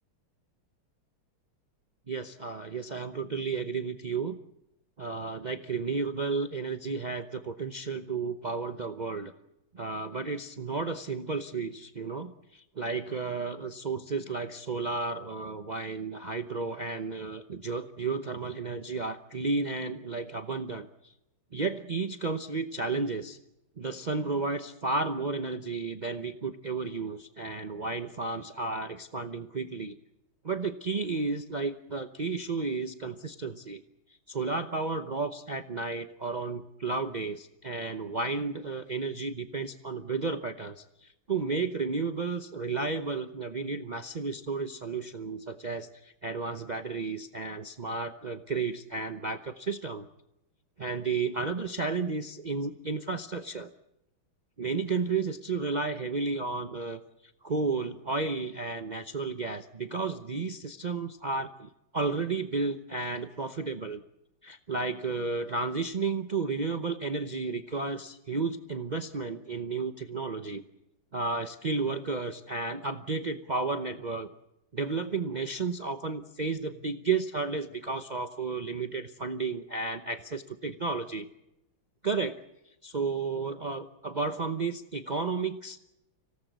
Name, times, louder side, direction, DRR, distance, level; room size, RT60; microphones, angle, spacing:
voice 1, 2.1-4.4 5.0-9.3 9.7-20.9 21.5-23.4 23.8-29.9 30.4-33.8 34.3-50.1 50.8-53.7 54.6-57.0 57.4-64.0 64.4-70.6 71.1-74.3 74.7-81.3 82.0-82.3 82.8-85.8, right 4 dB, 75° right, 7 dB, 0.4 m, -32 dB
26.0 x 18.0 x 8.1 m, 0.89 s
omnidirectional pair, 2.3 m